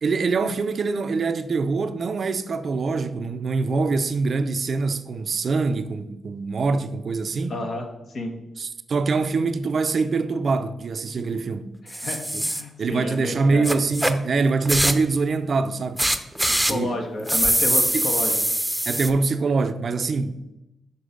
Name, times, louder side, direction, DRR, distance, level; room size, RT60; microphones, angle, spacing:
voice 1, 0.0-7.5 8.6-11.7 12.3-12.4 12.8-16.0 16.7-17.0 17.9-18.1 18.9-20.3, right 4 dB, 60° right, 0.5 m, -24 dB
voice 2, 7.5-8.3 11.8-13.7 16.5-18.4, left 2 dB, 65° left, 1.4 m, -31 dB
sound 1, 11.9-12.6 13.6-14.1 14.7-15.1 16.0-16.7 17.3-19.1, right 1 dB, 5° right, 0.7 m, -22 dB
6.8 x 4.3 x 5.1 m
supercardioid pair, 50°, 0 cm